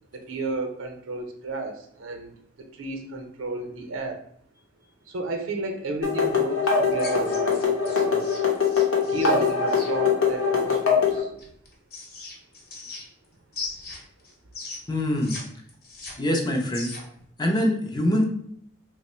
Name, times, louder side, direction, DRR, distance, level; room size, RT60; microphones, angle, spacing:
voice 1, 0.1-2.3 2.6-4.2 5.1-8.3 9.0-11.3, right 2 dB, 80° right, 4 dB, 0.6 m, -32 dB
sound 1, 6.0-11.2, left 5 dB, 90° left, 0.8 m, -23 dB
sound 2, 6.9-9.9 11.4-13.3 13.5-15.4 15.7-17.2, left 3 dB, 50° left, 0.9 m, -39 dB
voice 2, 14.9-15.4 16.2-16.9 17.4-18.2, left 1 dB, 20° left, 1 dB, 0.4 m, -24 dB
2.9 x 2.1 x 4.1 m, 0.67 s
head